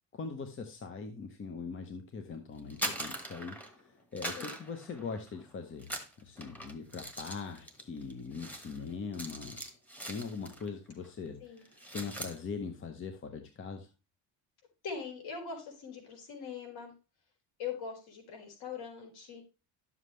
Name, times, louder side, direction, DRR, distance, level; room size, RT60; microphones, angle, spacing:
voice 1, 0.1-9.6 10.0-13.9, left 5 dB, 30° left, 6 dB, 1.0 m, -41 dB
sound 1, 2.6-3.8 4.2-5.4 5.8-10.7 11.0-11.3 11.6-12.4, right 1 dB, 5° left, 1.3 m, -42 dB
voice 2, 14.8-16.9 17.6-19.4, left 6 dB, 60° left, 1 dB, 4.5 m, -41 dB
11.5 x 7.4 x 3.2 m, 0.30 s
cardioid pair, 155°, 40 cm